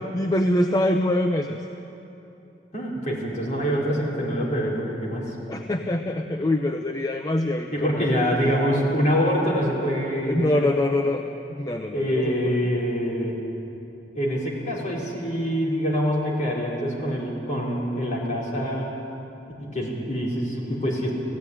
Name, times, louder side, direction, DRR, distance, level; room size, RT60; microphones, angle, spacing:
voice 1, 0.1-1.6 5.5-8.1 10.3-11.2 11.5-12.5, left 1 dB, 20° left, 5 dB, 0.7 m, -24 dB
voice 2, 2.7-5.2 7.7-10.7 11.9-13.4 14.1-18.9 19.6-21.1, equal, 45° left, -4 dB, 5.1 m, -25 dB
17.5 x 16.0 x 10.0 m, 2.9 s
head